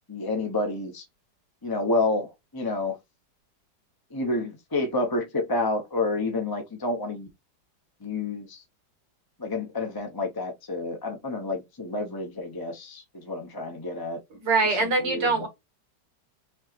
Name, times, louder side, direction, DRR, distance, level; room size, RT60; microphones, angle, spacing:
voice 1, 0.1-1.0 1.6-3.0 4.1-7.3 8.0-8.6 9.4-14.2 14.6-15.5, left 2 dB, 20° left, 0.5 m, -29 dB
voice 2, 14.4-15.5, right 3 dB, 80° right, 2.5 m, -23 dB
5.4 x 3.0 x 2.9 m
omnidirectional pair, 1.9 m